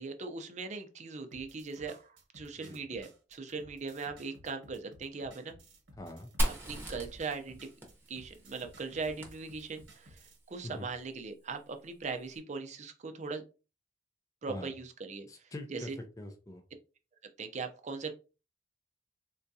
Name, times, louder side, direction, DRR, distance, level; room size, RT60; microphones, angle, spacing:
voice 1, 0.0-5.6 6.4-7.7 8.1-10.2 10.5-13.4 14.4-15.3 15.7-15.9 17.4-18.1, right 4 dB, 40° right, 7 dB, 0.5 m, -40 dB
sound 1, 1.3-10.4, right 1 dB, 75° right, 1.0 m, -57 dB
voice 2, 6.0-6.3 10.6-10.9 14.5-14.7 15.3-16.6, left 1 dB, 20° left, 4 dB, 0.4 m, -43 dB
Fire, 6.4-10.1, equal, 15° right, 0.8 m, -37 dB
3.7 x 2.3 x 2.7 m, 0.32 s
head